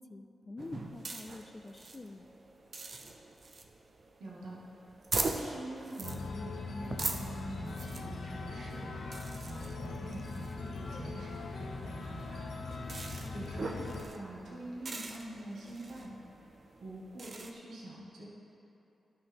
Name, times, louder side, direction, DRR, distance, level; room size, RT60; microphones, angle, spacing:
voice 1, 0.0-2.3 13.2-13.5, left 2 dB, 25° left, 8 dB, 0.4 m, -47 dB
sound 1, 0.6-17.5, right 3 dB, 40° right, 0.5 m, -42 dB
voice 2, 4.2-4.6 5.2-9.0 9.5-12.5 13.3-16.2 16.8-18.3, right 1 dB, 85° right, -5 dB, 1.4 m, -45 dB
sound 2, 6.0-14.0, left 3 dB, 80° left, 0.8 m, -41 dB
12.0 x 5.9 x 3.5 m, 2.9 s
wide cardioid pair, 145°, 0 cm